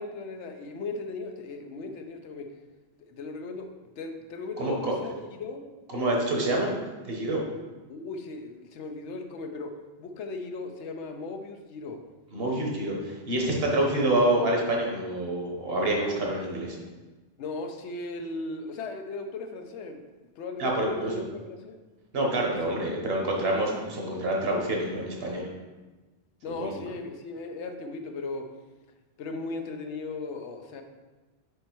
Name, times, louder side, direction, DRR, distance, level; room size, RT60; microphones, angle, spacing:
voice 1, 0.0-2.5 3.0-3.7 4.0-5.7 7.9-9.7 10.0-12.0 17.4-20.0 20.4-21.8 22.6-22.9 26.4-28.5 29.2-30.8, left 3 dB, 85° left, 5 dB, 1.0 m, -37 dB
voice 2, 4.6-4.9 5.9-6.7 7.0-7.4 12.3-16.8 20.6-21.2 22.1-25.5 26.6-26.7, right 1 dB, 60° right, -1 dB, 1.3 m, -27 dB
5.1 x 4.3 x 4.5 m, 1.2 s
omnidirectional pair, 1.2 m